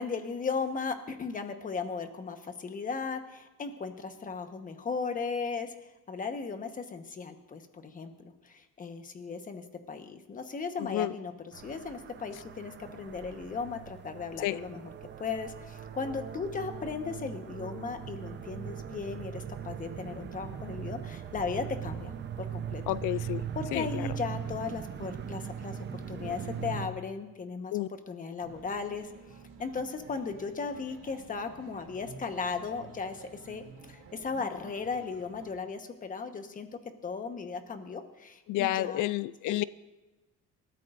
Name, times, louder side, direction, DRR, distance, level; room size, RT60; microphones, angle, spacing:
voice 1, 0.0-5.7 6.1-14.9 15.2-22.8 23.5-25.8 26.1-29.1 29.6-39.0 39.5-39.6, left 5 dB, 25° left, 7 dB, 1.2 m, -36 dB
sound 1, 11.5-26.9, right 8 dB, 35° right, 0.8 m, -40 dB
voice 2, 22.9-23.4 23.7-24.1 27.7-27.9 38.5-39.6, left 15 dB, 75° left, 17 dB, 0.5 m, -30 dB
sound 2, 28.4-35.6, right 5 dB, 85° right, 2.8 m, -52 dB
27.5 x 13.5 x 2.6 m, 1.1 s
cardioid pair, 155°, 31 cm